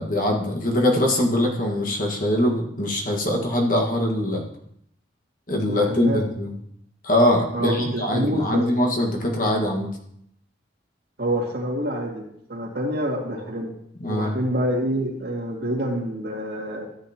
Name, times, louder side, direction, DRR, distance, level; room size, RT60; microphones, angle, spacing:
voice 1, 0.0-4.4 5.5-6.5 7.0-9.9 14.0-14.3, left 1 dB, 45° left, 0 dB, 1.6 m, -22 dB
voice 2, 5.7-6.2 7.5-8.7 11.2-12.2 12.5-13.7 14.1-16.9, right 1 dB, 60° right, -2 dB, 2.3 m, -27 dB
13.5 x 8.1 x 2.9 m, 0.72 s
head